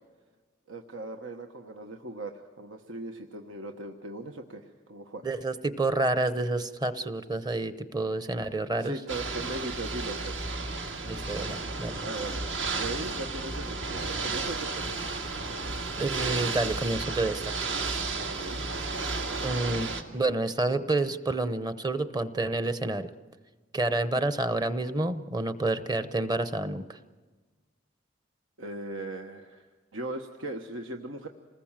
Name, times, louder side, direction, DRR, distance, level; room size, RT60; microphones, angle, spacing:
voice 1, 0.7-5.2 8.8-10.6 12.0-15.3 18.3-18.6 28.6-31.3, right 2 dB, 85° right, 4 dB, 1.3 m, -39 dB
voice 2, 5.2-9.0 11.0-12.0 16.0-17.5 19.4-23.1 23.7-27.0, right 2 dB, 20° right, 12 dB, 0.8 m, -29 dB
Ocean / Boat Water vehicle, 9.1-20.0, right 3 dB, 70° right, 2.2 m, -33 dB
27.5 x 20.0 x 7.4 m, 1.4 s
head